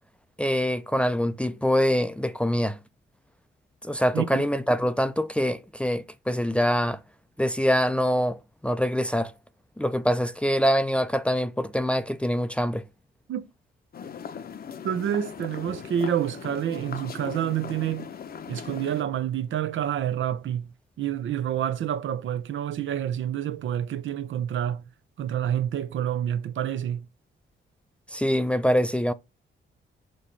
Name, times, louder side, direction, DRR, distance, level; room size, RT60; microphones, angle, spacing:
voice 1, 0.4-2.8 3.8-7.0 7.4-9.3 9.8-12.8 28.1-29.1, equal, 5° left, 0.5 m, -24 dB
sound 1, 13.9-19.0, left 7 dB, 50° left, 0.7 m, -39 dB
voice 2, 14.8-18.1 18.5-20.7 21.0-24.8 25.2-27.1, right 10 dB, 75° right, 0.8 m, -28 dB
6.7 x 3.0 x 5.4 m
cardioid pair, 115°, 20 cm